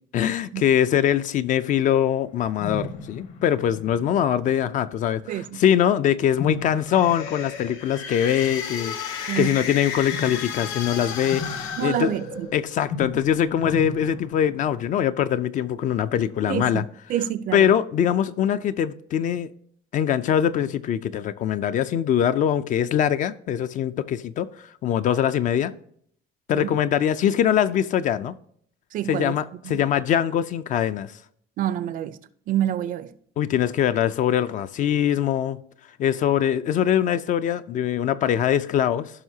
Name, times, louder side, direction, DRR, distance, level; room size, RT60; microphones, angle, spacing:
voice 1, 0.1-12.1 12.5-16.8 17.5-19.5 19.9-24.5 24.8-25.7 26.5-28.3 29.1-31.1 33.4-35.6 36.0-39.1, left 9 dB, 40° left, 0.4 m, -23 dB
sound 1, 1.8-1.9 2.6-5.4 6.4-8.5 10.1-15.1, left 2 dB, 70° left, 1.9 m, -37 dB
voice 2, 5.3-5.6 9.3-9.6 11.8-12.5 16.5-17.7 26.5-26.7 28.9-29.4 29.6-29.8 31.6-32.2 32.5-33.1, right 11 dB, 45° right, 0.5 m, -27 dB
sound 2, 6.7-12.7, left 7 dB, 90° left, 1.3 m, -33 dB
16.0 x 5.7 x 2.7 m
cardioid pair, 175°, 20 cm